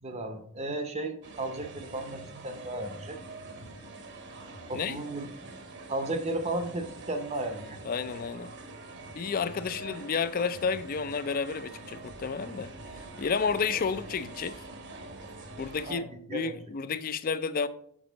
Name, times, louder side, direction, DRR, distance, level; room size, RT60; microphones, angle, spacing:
voice 1, 0.0-3.2 4.7-5.3 5.9-7.8 15.9-16.5, right 2 dB, 30° right, 0.6 m, -34 dB
sound 1, 1.2-15.9, right 2 dB, 55° right, 0.9 m, -45 dB
voice 2, 7.8-8.5 9.1-12.7 13.2-14.6 15.6-17.7, left 5 dB, 40° left, 0.4 m, -31 dB
6.4 x 6.2 x 3.9 m
head